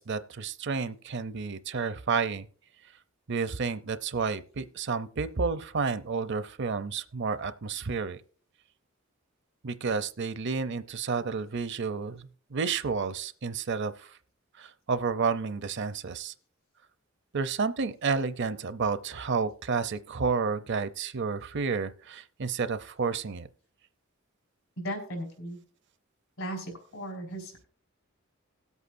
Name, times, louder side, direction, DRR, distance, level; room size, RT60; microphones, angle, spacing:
voice 1, 0.0-2.5 3.3-8.2 9.6-14.2 14.6-16.3 17.3-23.5, right 5 dB, 55° right, 0.6 m, -31 dB
voice 2, 24.8-25.6 26.4-27.7, equal, 80° left, 4.2 m, -37 dB
19.0 x 8.2 x 2.6 m
head